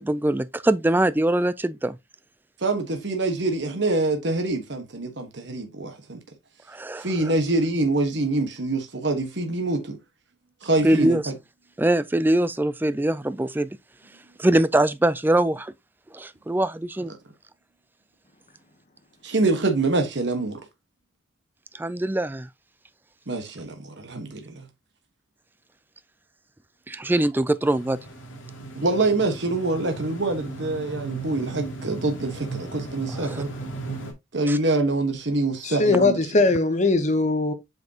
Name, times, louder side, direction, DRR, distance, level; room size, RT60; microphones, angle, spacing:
voice 1, 0.0-2.0 6.7-7.1 10.8-11.2 11.8-13.7 14.4-15.7 16.1-17.1 21.8-22.5 26.9-28.0 33.2-33.4 34.5-34.6, right 1 dB, 10° right, 0.3 m, -22 dB
voice 2, 2.6-6.2 7.0-10.0 10.6-11.3 19.2-20.6 23.3-24.6 28.7-33.5 34.3-36.2, right 2 dB, 60° right, 1.3 m, -25 dB
sound 1, 27.6-34.1, right 3 dB, 80° left, 2.9 m, -36 dB
voice 3, 35.6-37.5, left 3 dB, 35° left, 0.9 m, -20 dB
7.9 x 5.0 x 2.8 m
head